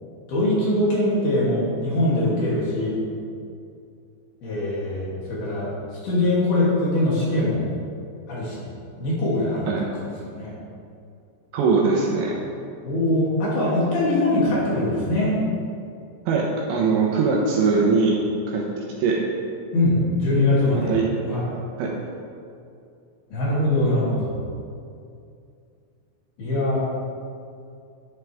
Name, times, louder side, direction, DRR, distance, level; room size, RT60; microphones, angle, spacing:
voice 1, 0.3-3.0 4.4-5.7 6.0-7.7 8.3-8.7 9.0-9.7 10.2-10.5 12.8-15.4 19.7-21.0 21.2-21.4 23.3-24.3 26.4-26.8, left 1 dB, 50° left, -7 dB, 4.4 m, -22 dB
voice 2, 11.5-12.4 16.3-18.2 18.5-18.6 19.0-19.2 20.9-21.1 21.8-21.9, right 4 dB, 75° right, -3 dB, 2.9 m, -21 dB
11.5 x 11.0 x 3.6 m, 2.4 s
omnidirectional pair, 6.0 m